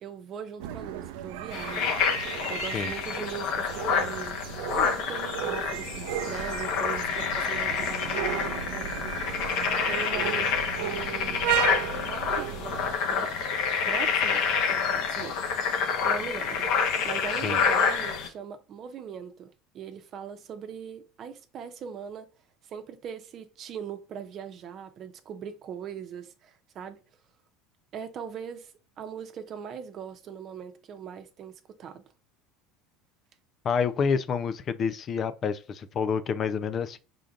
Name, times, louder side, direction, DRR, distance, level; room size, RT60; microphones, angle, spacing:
voice 1, 0.0-4.4 4.8-9.1 9.4-11.4 11.9-13.3 13.8-16.7 17.0-22.3 22.6-27.0 27.9-28.7 29.0-32.0, right 7 dB, 45° right, 0.8 m, -40 dB
sound 1, 0.6-13.0, right 10 dB, 75° right, 0.4 m, -34 dB
sound 2, 1.5-18.3, left 6 dB, 65° left, 0.9 m, -28 dB
voice 2, 33.6-37.0, left 6 dB, 40° left, 0.4 m, -28 dB
5.0 x 3.8 x 2.4 m
supercardioid pair, 95°, 0 cm